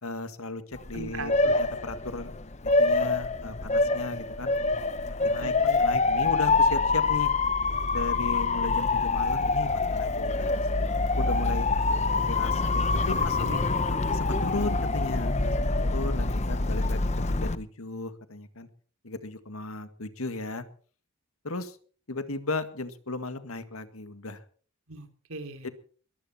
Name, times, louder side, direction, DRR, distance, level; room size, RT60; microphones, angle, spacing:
voice 1, 0.0-2.3 2.6-4.5 5.2-5.5 5.8-7.3 7.9-10.9 11.2-11.7 12.3-13.4 13.9-18.7 19.0-20.7 21.4-21.8 22.1-24.4 25.6-25.7, left 3 dB, 85° left, 10 dB, 1.9 m, -36 dB
Motor vehicle (road) / Siren, 0.7-17.6, left 3 dB, 30° left, 0.8 m, -26 dB
voice 2, 0.9-1.6 5.4-5.8 13.0-13.7 24.9-25.7, right 3 dB, 80° right, 7 dB, 3.2 m, -39 dB
22.0 x 15.0 x 4.3 m, 0.43 s
head